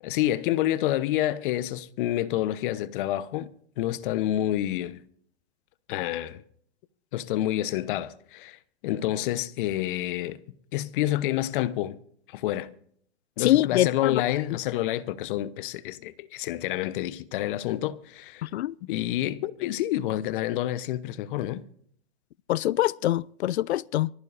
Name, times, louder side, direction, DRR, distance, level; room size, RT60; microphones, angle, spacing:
voice 1, 0.0-3.5 3.8-5.0 5.9-6.4 7.1-10.4 10.7-12.0 12.3-12.7 13.4-18.5 18.8-21.6, left 13 dB, 50° left, 1.0 m, -28 dB
voice 2, 13.4-14.1 18.4-18.7 22.5-24.1, left 14 dB, 70° left, 0.5 m, -24 dB
24.5 x 15.0 x 2.6 m
hypercardioid pair, 125°, 34 cm